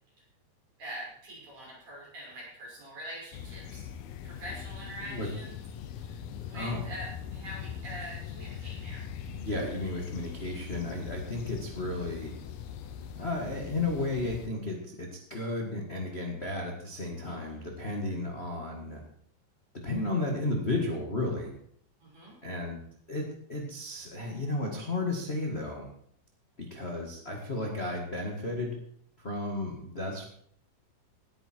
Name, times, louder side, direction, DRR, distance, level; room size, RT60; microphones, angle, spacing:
voice 1, 0.8-3.9 4.2-5.6 5.9-6.2 6.5-9.1 17.3-17.6 22.0-22.4, equal, 50° right, -5 dB, 8.1 m, -44 dB
sound 1, 3.3-14.5, left 8 dB, 70° left, 2.7 m, -42 dB
voice 2, 9.3-12.3 13.2-19.0 19.8-21.5 22.4-22.8 23.1-25.9 26.6-28.8 29.2-30.2, left 2 dB, 35° left, 0 dB, 0.9 m, -33 dB
18.0 x 9.8 x 4.6 m, 0.65 s
omnidirectional pair, 4.8 m